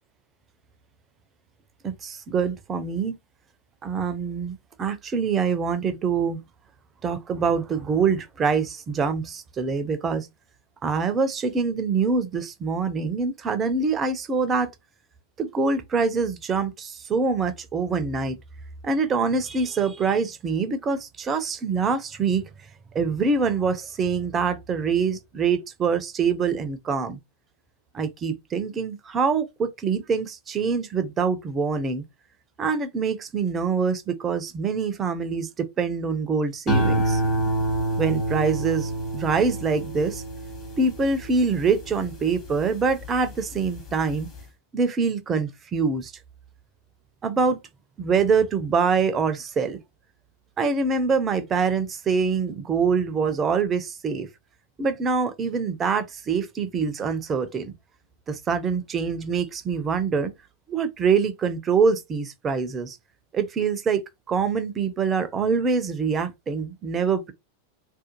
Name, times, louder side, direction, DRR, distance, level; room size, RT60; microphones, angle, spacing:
voice 1, 1.8-3.2 3.8-6.4 7.0-10.3 10.8-14.7 15.4-18.4 18.8-22.5 22.9-27.2 27.9-32.0 32.6-37.2 38.0-40.2 40.8-44.3 44.7-46.1 47.2-47.6 48.0-49.8 50.6-54.3 54.8-57.7 58.3-60.3 60.7-63.0 63.3-64.0 64.3-67.3, right 5 dB, 25° right, 0.4 m, -25 dB
sound 1, 36.7-43.2 43.7-44.1, right 1 dB, 35° left, 1.0 m, -27 dB
2.4 x 2.1 x 2.9 m
figure-of-eight pair, 90°, 0 cm